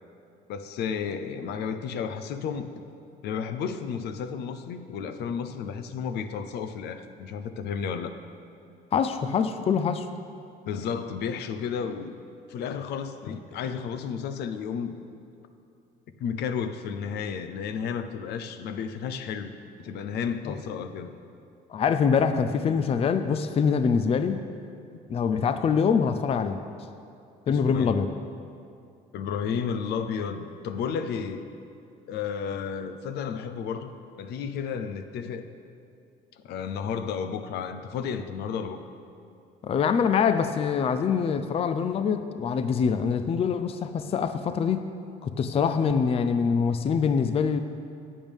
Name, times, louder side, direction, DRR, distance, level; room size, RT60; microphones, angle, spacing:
voice 1, 0.5-2.7 3.2-8.1 10.7-12.2 12.5-15.0 16.2-21.1 27.5-28.0 29.1-31.5 32.1-35.5 36.4-38.8, left 6 dB, 75° left, 9 dB, 0.7 m, -32 dB
voice 2, 8.9-10.1 20.5-20.6 21.7-24.5 25.1-26.6 27.5-28.1 39.6-44.9 45.2-47.6, left 6 dB, 35° left, 10 dB, 0.5 m, -24 dB
13.5 x 9.0 x 3.5 m, 2.5 s
cardioid pair, 110°, 17 cm